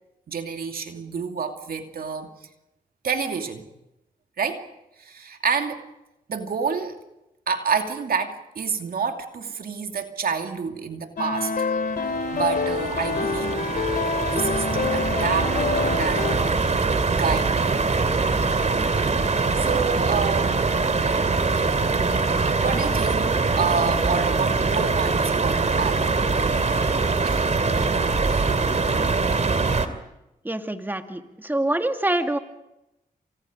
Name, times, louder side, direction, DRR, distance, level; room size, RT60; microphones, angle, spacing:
voice 1, 0.3-2.3 3.0-3.7 4.4-4.7 5.0-5.9 6.3-7.0 7.5-11.5 12.3-13.6 14.3-15.6 16.0-16.5 17.0-17.6 19.6-20.7 22.6-26.1 26.4-27.5 28.2-28.4, right 6 dB, 70° right, 5 dB, 2.6 m, -28 dB
sound 1, 11.2-16.3, left 4 dB, 65° left, 3.1 m, -26 dB
sound 2, 11.9-29.9, right 4 dB, 45° right, 2.6 m, -23 dB
voice 2, 30.4-32.4, right 1 dB, 10° right, 6 dB, 2.2 m, -25 dB
29.5 x 27.0 x 5.2 m, 0.91 s
cardioid pair, 60°, 16 cm